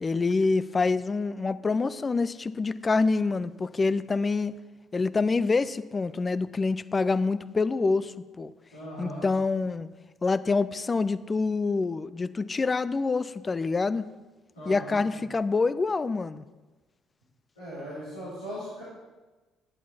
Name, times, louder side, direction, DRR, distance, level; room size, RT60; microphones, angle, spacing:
voice 1, 0.0-4.5 4.9-8.5 9.0-9.9 10.2-14.1 14.7-16.4, left 4 dB, 30° left, 15 dB, 0.4 m, -26 dB
voice 2, 8.7-9.3 14.5-15.0 17.6-18.8, equal, 85° left, -12 dB, 3.5 m, -38 dB
11.0 x 8.3 x 4.2 m, 1.2 s
figure-of-eight pair, 45°, 0 cm